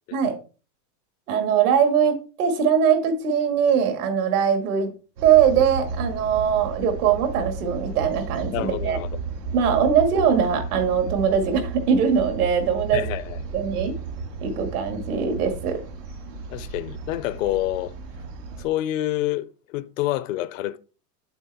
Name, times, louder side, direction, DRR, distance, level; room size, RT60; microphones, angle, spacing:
voice 1, 1.3-4.9 5.2-9.0 9.5-13.0 13.5-13.9 14.4-15.8, right 7 dB, 65° right, 1.9 m, -21 dB
sound 1, 5.2-18.7, right 4 dB, 90° right, 2.0 m, -34 dB
voice 2, 8.5-9.2 12.9-13.4 16.5-17.9 18.6-20.8, left 14 dB, 55° left, 0.5 m, -27 dB
7.2 x 6.1 x 3.4 m
supercardioid pair, 150°, 48 cm